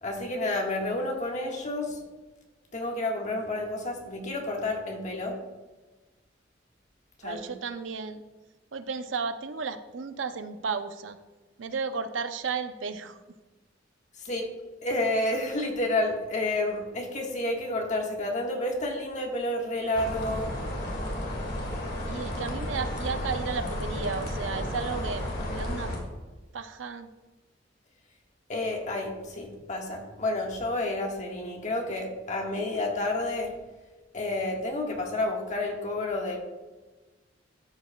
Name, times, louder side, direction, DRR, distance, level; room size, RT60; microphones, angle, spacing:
voice 1, 0.0-2.0 2.7-5.4 7.2-7.5 14.2-14.5 14.8-20.5 28.5-33.5 34.1-36.4, left 2 dB, 40° left, 1 dB, 1.5 m, -30 dB
voice 2, 7.2-8.2 8.7-11.2 11.6-13.2 22.0-25.9 26.5-27.1, right 5 dB, 85° right, 10 dB, 0.6 m, -33 dB
sound 1, 19.9-26.0, left 1 dB, 60° left, 2.2 m, -33 dB
13.5 x 8.0 x 2.3 m, 1.2 s
head